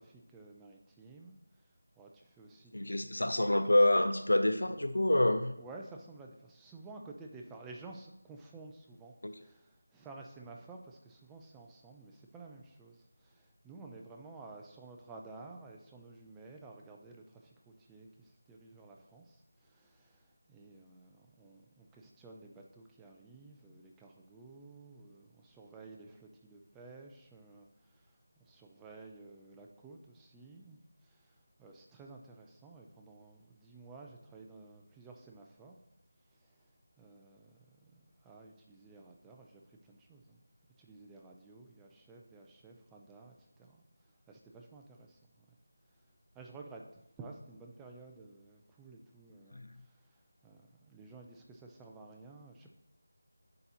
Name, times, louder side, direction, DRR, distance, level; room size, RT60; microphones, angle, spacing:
voice 1, 0.0-1.4 2.0-3.2 5.6-35.8 37.0-40.4 40.8-43.8 44.3-45.5 46.3-50.1 50.4-52.7, right 3 dB, 5° right, 0 dB, 0.4 m, -53 dB
voice 2, 2.7-5.5 9.2-9.3 49.6-49.7, left 1 dB, 90° left, 9 dB, 0.5 m, -27 dB
10.5 x 4.1 x 2.9 m, 0.83 s
figure-of-eight pair, 170°, 0 cm